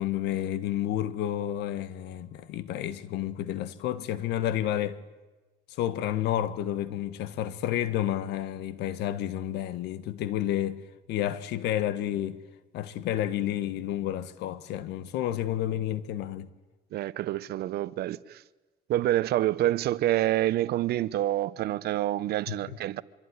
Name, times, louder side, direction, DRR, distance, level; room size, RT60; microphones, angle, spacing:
voice 1, 0.0-5.0 5.8-10.8 11.1-12.4 12.7-16.5 22.5-22.6, left 12 dB, 85° left, 1.6 m, -30 dB
voice 2, 16.9-18.4 18.9-23.0, right 14 dB, 70° right, 0.9 m, -27 dB
25.5 x 23.5 x 9.8 m
cardioid pair, 110°, 17 cm